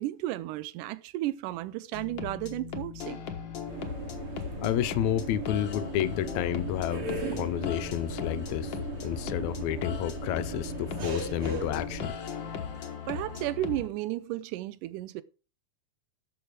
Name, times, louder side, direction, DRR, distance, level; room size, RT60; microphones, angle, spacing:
voice 1, 0.0-3.3 13.1-15.2, right 16 dB, 85° right, 2.2 m, -33 dB
sound 1, 1.9-13.9, left 7 dB, 60° left, 1.3 m, -38 dB
sound 2, 3.7-12.1, right 2 dB, 45° right, 3.1 m, -37 dB
voice 2, 4.6-7.1 7.3-8.8 9.0-12.1, left 11 dB, 75° left, 1.8 m, -30 dB
13.0 x 6.6 x 4.8 m
omnidirectional pair, 3.7 m